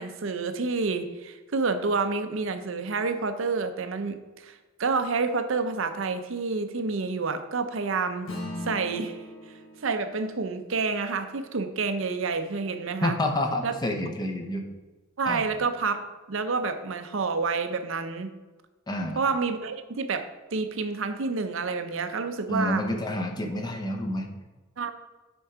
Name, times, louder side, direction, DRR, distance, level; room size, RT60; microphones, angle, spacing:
voice 1, 0.0-8.3 8.6-9.2 9.8-13.2 13.6-13.7 15.2-18.3 19.2-22.8 24.8-24.9, right 4 dB, 65° right, 8 dB, 0.6 m, -29 dB
Acoustic guitar / Strum, 8.3-13.0, left 1 dB, 75° left, 1.2 m, -42 dB
voice 2, 13.0-14.7 15.3-15.5 18.9-19.2 22.5-24.3, left 1 dB, 20° left, 3 dB, 0.7 m, -29 dB
7.1 x 4.5 x 4.9 m, 1.2 s
head